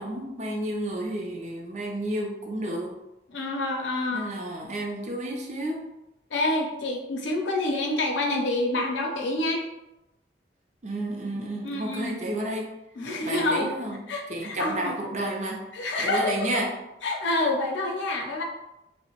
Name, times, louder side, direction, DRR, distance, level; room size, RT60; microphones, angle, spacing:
voice 1, 0.0-3.0 4.1-5.9 10.8-12.7 13.2-14.0 14.3-15.6 16.0-16.7, right 1 dB, 40° right, 0 dB, 0.5 m, -31 dB
voice 2, 3.3-4.2 6.3-9.6 11.6-12.1 13.0-13.7 14.1-14.9 15.7-16.6 17.0-18.4, left 2 dB, 90° left, 1 dB, 0.6 m, -27 dB
2.8 x 2.1 x 2.9 m, 0.93 s
head